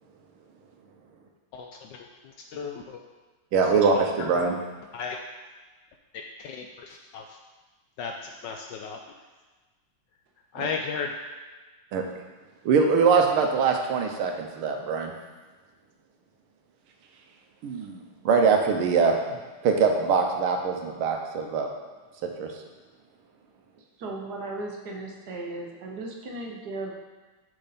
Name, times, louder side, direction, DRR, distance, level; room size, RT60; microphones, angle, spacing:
voice 1, 1.5-3.0 3.7-3.8 4.2-4.4 4.9-5.2 6.4-7.2 8.0-9.0 10.5-11.2, left 5 dB, 75° left, 2 dB, 1.0 m, -35 dB
voice 2, 3.5-4.6 10.6-10.7 11.9-12.0 12.6-15.1 17.6-21.7 22.2-22.5, right 5 dB, 85° right, 3 dB, 1.7 m, -23 dB
voice 3, 24.0-26.9, right 2 dB, 60° right, 0 dB, 1.3 m, -36 dB
6.9 x 6.6 x 4.1 m, 1.3 s
omnidirectional pair, 2.3 m